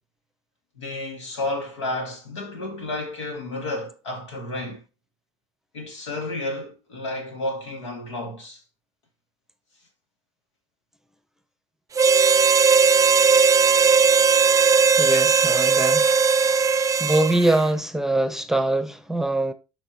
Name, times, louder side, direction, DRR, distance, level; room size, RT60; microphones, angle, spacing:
voice 1, 0.8-4.8 5.7-8.6 14.3-14.4, left 2 dB, 85° left, 1.8 m, -31 dB
Harmonica, 11.9-17.6, right 5 dB, 25° right, 0.4 m, -18 dB
voice 2, 15.0-16.1 17.0-19.5, right 1 dB, 5° right, 0.8 m, -23 dB
11.5 x 4.3 x 2.9 m
hypercardioid pair, 60°, 15 cm